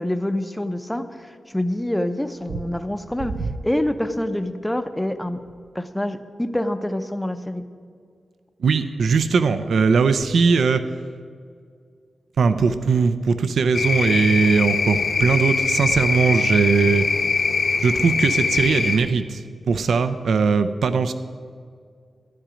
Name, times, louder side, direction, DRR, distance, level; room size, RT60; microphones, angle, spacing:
voice 1, 0.0-3.4 3.6-5.4 5.7-7.6, left 1 dB, 5° left, 9 dB, 0.5 m, -26 dB
voice 2, 8.6-10.8 12.4-17.1 17.8-19.4 19.7-21.1, right 5 dB, 80° right, 11 dB, 0.5 m, -19 dB
sound 1, 13.7-19.0, left 4 dB, 65° left, 0.9 m, -22 dB
12.0 x 9.8 x 5.1 m, 2.2 s
wide cardioid pair, 140°, 0 cm